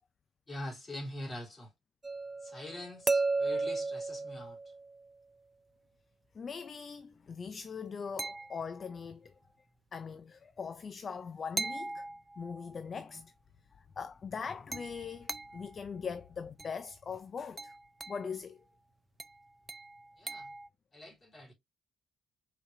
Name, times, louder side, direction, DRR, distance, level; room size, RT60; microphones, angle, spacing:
voice 1, 0.5-1.7 2.4-4.7 20.2-20.5 20.9-21.5, left 1 dB, 30° left, 3.3 m, -44 dB
sound 1, 2.0-5.1 8.2-9.0 11.6-12.8 14.7-15.8 16.6-16.9 17.6-18.3 19.2-20.7, right 3 dB, 25° right, 0.5 m, -36 dB
voice 2, 6.3-9.3 9.9-12.1 12.4-13.3 13.7-17.7 18.1-18.6, left 6 dB, 45° left, 0.4 m, -41 dB
5.0 x 4.0 x 2.6 m
cardioid pair, 90°, 0 cm